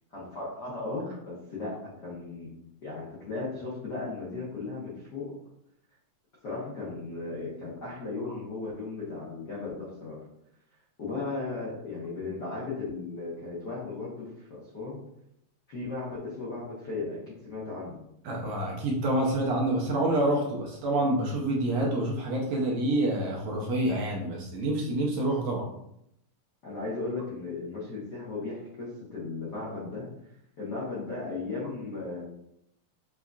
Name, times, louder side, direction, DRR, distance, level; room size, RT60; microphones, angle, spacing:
voice 1, 0.1-2.5 2.8-5.3 6.4-10.2 11.0-15.0 15.7-18.0 26.6-30.1 30.6-32.2, left 3 dB, 80° left, -8 dB, 0.9 m, -36 dB
voice 2, 18.2-25.6, right 1 dB, 70° right, -2 dB, 1.7 m, -27 dB
6.1 x 2.7 x 2.4 m, 0.77 s
omnidirectional pair, 3.5 m